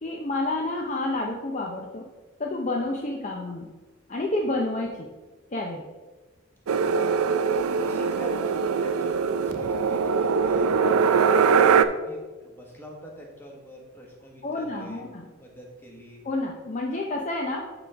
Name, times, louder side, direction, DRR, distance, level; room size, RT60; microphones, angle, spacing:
voice 1, 0.0-2.1 2.4-3.7 4.1-5.1 5.5-5.9 14.4-15.2 16.2-17.7, left 2 dB, 35° left, 0 dB, 0.5 m, -29 dB
voice 2, 6.7-7.2 7.7-15.0 15.4-16.2, equal, 10° left, -2 dB, 1.3 m, -45 dB
sound 1, 6.7-11.9, right 6 dB, 85° right, 0.4 m, -22 dB
11.5 x 3.9 x 3.4 m, 1.3 s
head